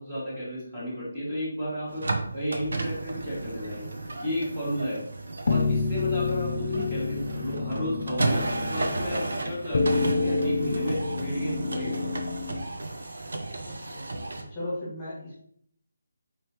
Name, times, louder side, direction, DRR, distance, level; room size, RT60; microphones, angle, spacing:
voice 1, 0.0-2.0 2.3-3.9 4.2-5.0 5.4-12.1, equal, 10° right, -9 dB, 1.0 m, -33 dB
sound 1, 1.9-14.4, right 2 dB, 65° right, 0.7 m, -33 dB
voice 2, 2.6-3.0 13.6-14.0 14.5-15.4, left 1 dB, 5° left, -10 dB, 1.4 m, -37 dB
sound 2, 5.5-12.6, left 4 dB, 45° left, 0.4 m, -28 dB
4.3 x 3.2 x 2.9 m, 0.68 s
hypercardioid pair, 175°, 0 cm